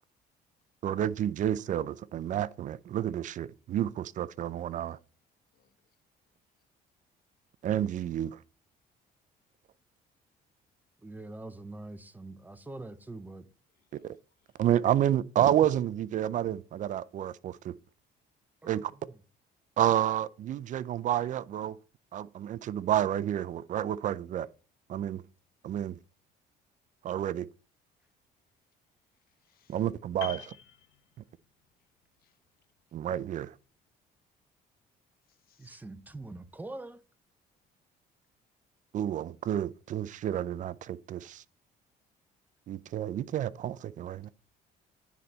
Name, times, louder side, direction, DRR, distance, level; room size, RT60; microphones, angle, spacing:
voice 1, 0.8-5.0 7.6-8.4 14.0-14.2 14.6-17.7 18.6-18.9 19.8-21.8 22.1-24.5 24.9-25.2 25.6-26.0 27.0-27.5 29.7-30.5 32.9-33.5 38.9-41.4 42.7-44.3, right 11 dB, 50° right, 0.4 m, -30 dB
voice 2, 11.0-13.5 18.6-19.2 35.6-37.0, right 2 dB, 10° right, 0.7 m, -44 dB
voice 3, 13.8-14.1 29.4-29.8 32.2-32.4 35.3-35.8, left 9 dB, 60° left, 1.2 m, -69 dB
Piano, 30.2-31.6 31.9-32.2, left 10 dB, 90° left, 0.9 m, -44 dB
9.8 x 4.1 x 4.4 m
cardioid pair, 110°, 17 cm